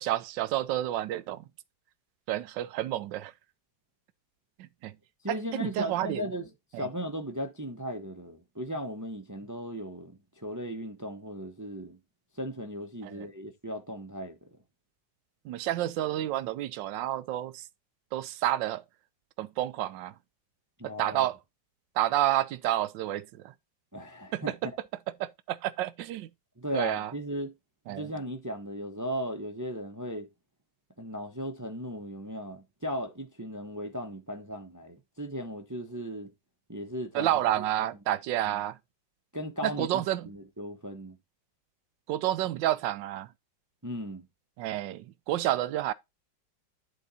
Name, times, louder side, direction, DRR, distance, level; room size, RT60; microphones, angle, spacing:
voice 1, 0.0-1.4 2.3-3.3 4.6-5.0 5.3-6.3 6.7-6.9 13.0-13.3 15.4-17.7 18.1-18.8 19.4-20.1 20.8-21.4 21.9-23.5 24.3-24.6 25.2-26.3 26.7-27.1 27.9-28.1 37.1-38.8 39.6-40.3 42.1-43.3 44.6-45.9, right 13 dB, 85° right, 1.3 m, -30 dB
voice 2, 5.2-6.5 6.8-12.0 12.4-14.5 20.8-21.3 23.9-24.5 26.6-27.5 27.9-30.3 31.0-36.3 36.7-37.3 37.8-37.9 38.5-38.6 39.3-41.2 43.8-44.3, equal, 20° right, 0.5 m, -37 dB
11.0 x 4.0 x 4.1 m
omnidirectional pair, 2.0 m